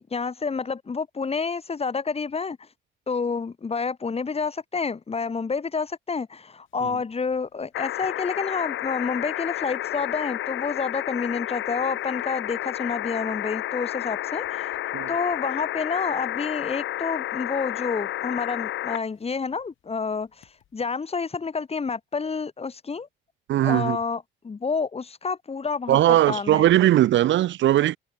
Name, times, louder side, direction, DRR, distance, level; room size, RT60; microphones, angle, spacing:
voice 1, 0.0-2.7 3.1-14.7 15.1-23.1 23.6-26.6, left 5 dB, 30° left, 1.8 m, -29 dB
sound 1, 7.7-19.0 20.4-20.5, left 13 dB, 75° left, 1.9 m, -31 dB
voice 2, 23.5-24.0 25.9-28.0, right 13 dB, 70° right, 0.7 m, -19 dB
cardioid pair, 90°, 20 cm